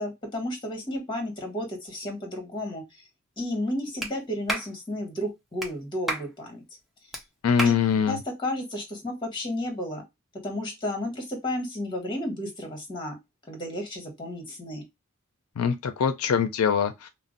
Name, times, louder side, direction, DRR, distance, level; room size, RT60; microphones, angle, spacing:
voice 1, 0.0-2.8 3.4-6.6 7.6-7.7 8.1-10.0 10.4-13.2 13.5-14.8, left 1 dB, 20° left, 1.2 m, -32 dB
Clapping, 4.0-4.1 4.5-4.7 5.6-5.7 6.1-6.3 7.1-7.2 7.6-7.8, right 1 dB, ahead, 0.5 m, -30 dB
voice 2, 7.4-8.2 15.6-17.1, left 7 dB, 80° left, 0.4 m, -23 dB
2.5 x 2.0 x 3.7 m
head